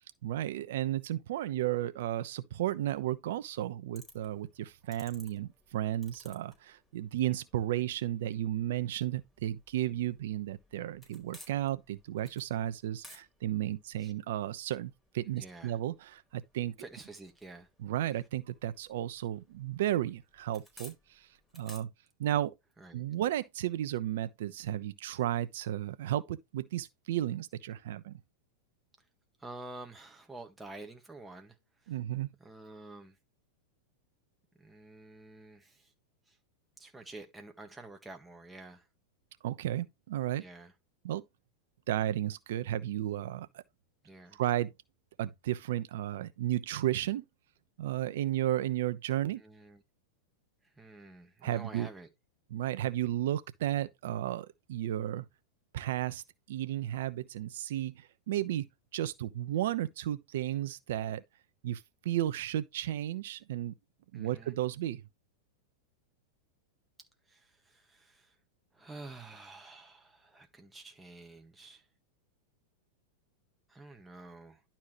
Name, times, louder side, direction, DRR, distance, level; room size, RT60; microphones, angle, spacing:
voice 1, 0.2-16.7 17.8-21.3 21.5-21.9 22.2-22.5 22.9-28.2 31.9-32.3 39.4-40.4 41.0-41.2 41.9-43.6 44.4-44.7 45.2-47.2 47.8-49.4 51.4-51.9 52.5-55.3 55.7-56.2 56.5-61.2 61.6-63.7 64.1-65.0, right 13 dB, 70° right, 0.9 m, -33 dB
sound 1, 3.9-21.8, equal, 10° left, 4.5 m, -60 dB
voice 2, 15.3-15.8 16.8-17.7 22.8-23.0 29.4-32.0 32.4-33.2 34.6-35.9 36.3-36.4 36.8-38.9 40.4-40.7 44.0-44.4 49.2-49.8 50.6-52.1 64.1-64.5 67.3-68.4 68.7-71.9 73.7-74.6, right 2 dB, 10° right, 1.7 m, -49 dB
11.5 x 4.3 x 3.2 m
hypercardioid pair, 105°, 0 cm